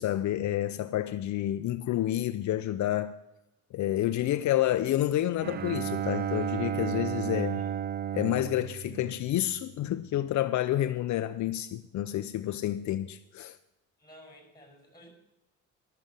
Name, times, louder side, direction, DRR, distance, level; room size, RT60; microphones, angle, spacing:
voice 1, 0.0-3.1 3.7-7.6 8.1-13.6, left 13 dB, 70° left, 0.6 m, -29 dB
Bowed string instrument, 5.4-9.8, right 9 dB, 35° right, 0.4 m, -33 dB
voice 2, 7.3-7.8 14.0-15.1, equal, 15° left, 5.5 m, -53 dB
13.0 x 6.9 x 7.5 m
cardioid pair, 90°, 30 cm